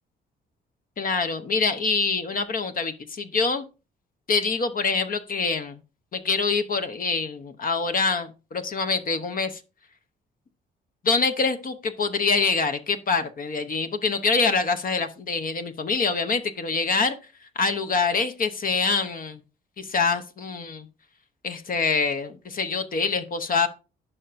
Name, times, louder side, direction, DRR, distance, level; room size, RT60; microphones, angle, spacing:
voice 1, 1.0-3.7 4.3-5.8 6.1-9.6 11.0-17.2 17.6-19.4 19.8-20.9 21.4-23.7, left 4 dB, 45° left, 0.8 m, -25 dB
11.0 x 5.6 x 2.5 m
cardioid pair, 90°, 20 cm